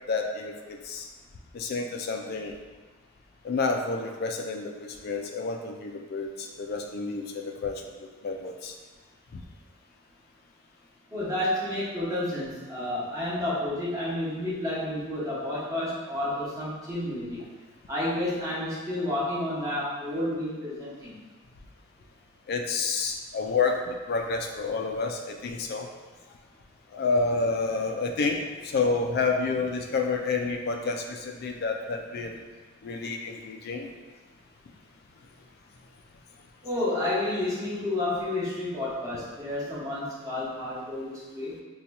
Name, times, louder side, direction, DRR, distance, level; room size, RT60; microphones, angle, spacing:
voice 1, 0.1-1.1 1.5-2.6 3.4-8.8 22.5-25.9 26.9-32.4 32.8-33.9, left 4 dB, 50° left, 4 dB, 0.3 m, -29 dB
voice 2, 11.1-17.4 17.9-21.2 36.6-41.5, left 1 dB, 15° right, -9 dB, 0.9 m, -30 dB
2.8 x 2.3 x 4.0 m, 1.3 s
head